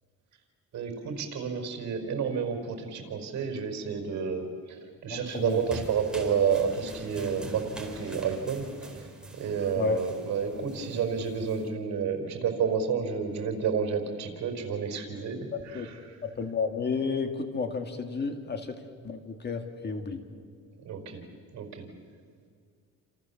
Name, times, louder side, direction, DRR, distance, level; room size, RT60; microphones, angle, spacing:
voice 1, 0.7-8.7 9.0-9.1 9.4-15.9 20.8-21.2 21.5-21.9, right 6 dB, 60° right, 5 dB, 4.7 m, -30 dB
voice 2, 5.1-5.6 9.8-10.0 15.5-15.9 16.2-20.2, left 5 dB, 30° left, 6 dB, 2.1 m, -32 dB
sound 1, 5.3-11.7, right 2 dB, ahead, 4.0 m, -44 dB
29.5 x 28.0 x 7.2 m, 2.2 s
cardioid pair, 130°, 32 cm